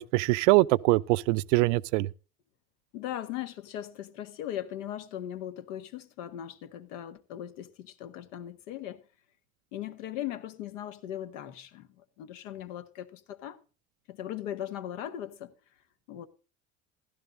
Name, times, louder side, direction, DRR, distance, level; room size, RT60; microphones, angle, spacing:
voice 1, 0.0-2.1, right 21 dB, 75° right, 0.6 m, -23 dB
voice 2, 2.9-9.0 9.7-13.6 14.1-15.5 16.1-16.3, left 11 dB, 75° left, 1.4 m, -39 dB
15.0 x 12.5 x 2.6 m
hypercardioid pair, 65°, 37 cm